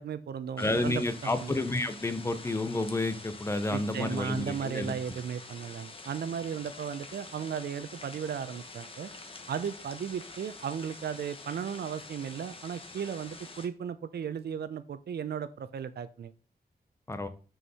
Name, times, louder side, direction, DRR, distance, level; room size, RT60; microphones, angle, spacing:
voice 1, 0.0-1.0 1.4-1.5 3.7-9.1 9.5-16.3, right 8 dB, 90° right, 13 dB, 0.6 m, -35 dB
sound 1, 0.6-13.7, left 3 dB, 35° left, 1.0 m, -47 dB
voice 2, 0.6-4.9 17.1-17.3, left 2 dB, 15° left, 10 dB, 0.7 m, -30 dB
6.4 x 4.7 x 5.5 m, 0.38 s
wide cardioid pair, 160°, 16 cm